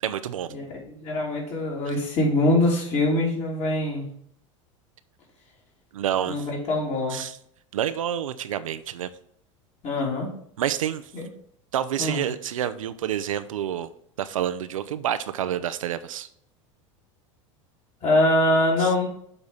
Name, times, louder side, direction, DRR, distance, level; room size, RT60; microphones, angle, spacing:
voice 1, 0.0-0.5 1.9-2.0 5.9-6.5 7.1-7.4 7.7-9.1 10.6-11.0 11.7-13.9 14.2-16.3 18.8-18.9, right 10 dB, 85° right, 12 dB, 0.5 m, -28 dB
voice 2, 0.5-4.1 6.3-7.2 9.8-10.3 11.1-11.3 12.0-12.2 18.0-19.1, left 1 dB, 45° left, -2 dB, 3.2 m, -23 dB
7.0 x 4.0 x 5.3 m, 0.67 s
hypercardioid pair, 85°, 17 cm